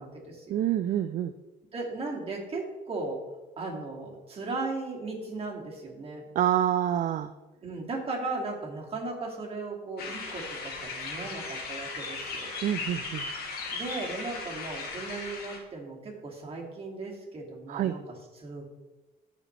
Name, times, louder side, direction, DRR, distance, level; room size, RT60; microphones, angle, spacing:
voice 1, 0.0-0.6 1.7-3.2 3.6-6.3 7.6-12.5 13.7-18.6, right 3 dB, 35° right, -2 dB, 2.6 m, -37 dB
voice 2, 0.5-1.3 6.4-7.3 12.6-13.3 17.7-17.9, right 11 dB, 50° right, 11 dB, 0.4 m, -27 dB
sound 1, 10.0-15.6, left 4 dB, 65° left, 1.9 m, -37 dB
15.0 x 5.0 x 3.4 m, 1.1 s
cardioid pair, 110°, 17 cm